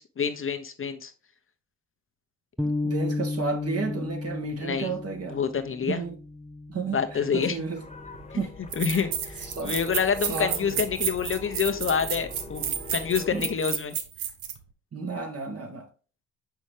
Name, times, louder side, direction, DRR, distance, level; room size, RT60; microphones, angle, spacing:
voice 1, 0.2-1.1 4.6-4.9 5.3-6.0 6.9-7.6 8.8-13.9, left 6 dB, 35° left, 0.8 m, -27 dB
sound 1, 2.6-9.0, left 2 dB, 5° right, 0.5 m, -34 dB
voice 2, 2.6-5.4 5.9-6.2 6.7-7.8 8.3-8.5 8.9-9.1 9.4-9.7 10.2-10.8 13.3-13.5 14.9-15.9, right 4 dB, 45° right, 1.8 m, -32 dB
sound 2, 7.3-13.5, left 2 dB, 15° left, 1.4 m, -42 dB
sound 3, 8.1-8.2 8.7-14.6, right 9 dB, 75° right, 1.0 m, -31 dB
6.1 x 5.6 x 3.3 m
supercardioid pair, 65°, 35 cm